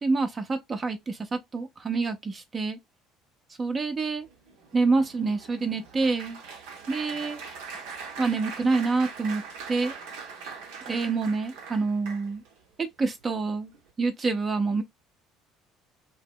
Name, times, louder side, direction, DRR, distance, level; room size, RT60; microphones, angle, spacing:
voice 1, 0.0-2.8 3.6-4.3 4.7-6.4 6.9-7.4 8.2-9.4 9.7-9.9 10.9-12.4 12.8-13.7 14.0-14.8, right 4 dB, 30° right, 0.6 m, -27 dB
Applause, 4.2-12.6 13.2-13.4 13.7-13.9, right 5 dB, 65° right, 0.7 m, -42 dB
2.8 x 2.1 x 3.5 m
figure-of-eight pair, 60°, 0 cm